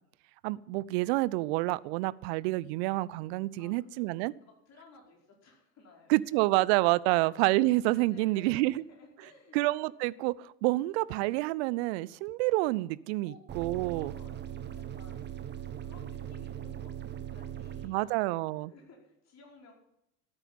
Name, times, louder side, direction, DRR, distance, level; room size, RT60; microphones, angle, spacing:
voice 1, 0.4-4.3 6.1-8.8 9.5-14.1 17.8-18.7, right 19 dB, 45° right, 21 dB, 0.5 m, -28 dB
voice 2, 3.6-4.1 4.4-6.8 7.1-7.3 7.7-9.6 13.2-13.4 13.7-15.3 15.5-19.7, left 3 dB, 35° left, 0 dB, 5.1 m, -57 dB
sound 1, 13.5-17.9, right 10 dB, 20° right, 1.4 m, -40 dB
13.5 x 9.0 x 8.9 m, 0.80 s
figure-of-eight pair, 85°, 48 cm